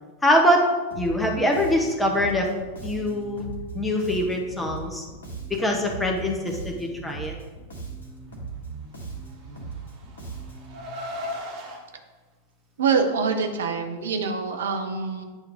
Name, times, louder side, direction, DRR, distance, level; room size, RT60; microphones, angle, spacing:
voice 1, 0.2-0.7 1.0-2.5 2.8-3.5 3.7-5.0 5.5-7.3, left 1 dB, 10° left, 1 dB, 1.2 m, -23 dB
Bass guitar, 0.9-10.8, right 4 dB, 65° left, 1.6 m, -38 dB
Car, 9.3-11.8, left 1 dB, 40° right, 1.6 m, -37 dB
voice 2, 12.8-15.2, right 5 dB, 65° right, 4 dB, 0.9 m, -25 dB
9.0 x 3.1 x 5.1 m, 1.3 s
figure-of-eight pair, 90°, 0 cm